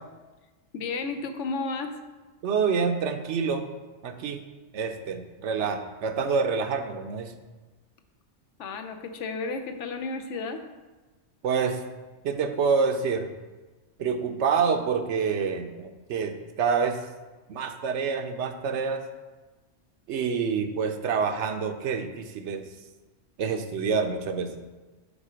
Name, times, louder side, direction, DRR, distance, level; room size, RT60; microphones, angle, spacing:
voice 1, 0.7-1.9 8.6-10.6, left 4 dB, 75° left, 7 dB, 1.0 m, -32 dB
voice 2, 2.4-3.7 4.0-4.4 4.7-7.3 11.4-11.8 12.2-13.3 14.0-17.0 17.5-19.0 20.1-22.6 23.4-24.5, right 5 dB, 70° right, 7 dB, 0.9 m, -27 dB
7.3 x 4.1 x 5.0 m, 1.2 s
omnidirectional pair, 1.2 m